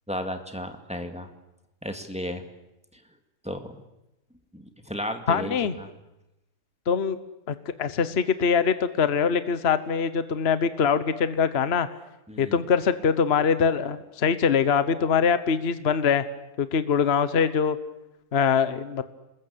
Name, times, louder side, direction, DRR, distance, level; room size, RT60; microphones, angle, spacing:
voice 1, 0.1-1.3 1.8-2.4 2.9-3.0 3.4-3.8 4.5-5.9 12.3-12.6, equal, 5° right, 5 dB, 2.1 m, -34 dB
voice 2, 5.3-5.7 6.9-7.2 7.5-11.9 12.4-16.2 16.6-17.8 18.3-19.0, left 6 dB, 45° left, 12 dB, 1.2 m, -23 dB
27.0 x 21.5 x 8.5 m, 0.93 s
omnidirectional pair, 1.7 m